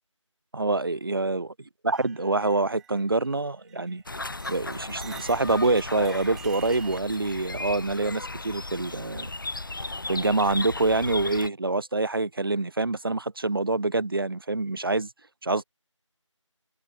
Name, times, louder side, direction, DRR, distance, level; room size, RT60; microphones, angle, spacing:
voice 1, 0.5-1.5 1.8-4.0 4.5-9.3 10.1-15.1 15.4-15.6, right 2 dB, 45° right, 1.2 m, -26 dB
sound 1, 1.9-4.0 4.3-7.0, right 10 dB, 5° right, 3.1 m, -48 dB
sound 2, 4.1-11.5, left 2 dB, 40° left, 0.6 m, -36 dB
figure-of-eight pair, 170°, 16 cm